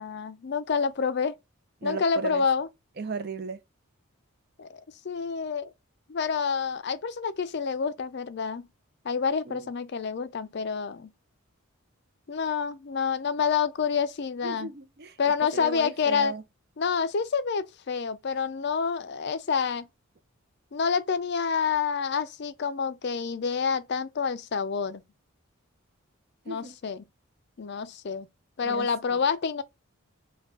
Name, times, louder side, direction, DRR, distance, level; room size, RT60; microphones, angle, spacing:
voice 1, 0.0-1.3 1.8-2.7 4.6-5.7 6.1-8.7 9.0-11.1 12.3-14.7 15.2-16.3 16.8-19.9 20.7-25.0 26.5-27.1 27.6-28.3 28.6-29.6, left 6 dB, 50° left, 0.4 m, -28 dB
voice 2, 1.8-2.4 3.0-3.6 9.5-9.7 14.4-15.2 15.5-16.4 26.5-26.7 28.6-29.2, right 4 dB, 45° right, 0.5 m, -36 dB
5.0 x 2.3 x 3.6 m
head